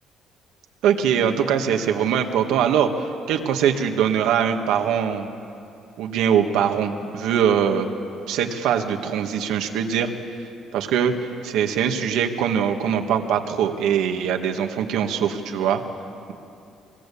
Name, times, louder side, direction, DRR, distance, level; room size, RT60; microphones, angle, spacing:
voice 1, 0.8-5.3 6.0-7.9 8.3-10.1 10.7-15.8, right 8 dB, 85° right, 5 dB, 1.9 m, -22 dB
23.0 x 21.5 x 8.6 m, 2.6 s
cardioid pair, 150°, 0 cm